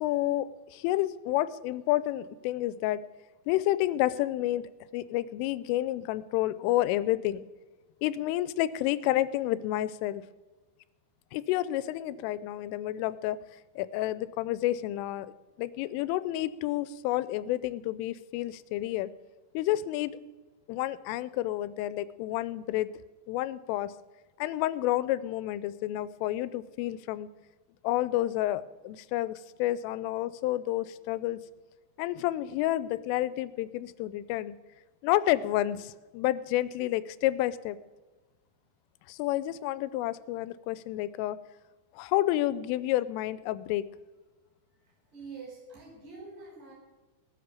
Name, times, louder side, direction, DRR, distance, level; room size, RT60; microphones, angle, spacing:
voice 1, 0.0-3.0 3.5-7.4 8.0-10.2 11.3-13.4 13.8-15.3 15.6-19.1 19.5-20.1 20.7-22.9 23.3-23.9 24.4-27.3 27.8-31.4 32.0-34.6 35.0-37.8 39.1-41.4 42.0-43.8, left 15 dB, 90° left, 16 dB, 3.2 m, -30 dB
voice 2, 44.7-46.7, right 4 dB, 35° right, -3 dB, 6.5 m, -46 dB
19.0 x 8.8 x 6.9 m, 1.2 s
omnidirectional pair, 5.6 m